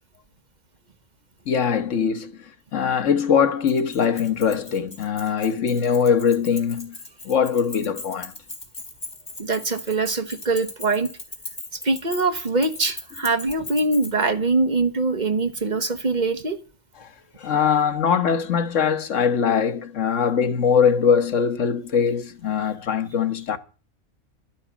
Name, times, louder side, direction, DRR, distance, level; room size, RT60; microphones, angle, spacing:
voice 1, 1.5-7.0 7.2-8.3 17.0-17.1 17.4-23.6, left 7 dB, 90° left, 1.5 m, -22 dB
Keys jangling, 3.7-14.3, left 2 dB, 35° left, 2.6 m, -39 dB
voice 2, 9.4-11.1 11.8-16.6, right 3 dB, 40° right, 1.2 m, -23 dB
12.5 x 9.2 x 7.2 m
omnidirectional pair, 1.2 m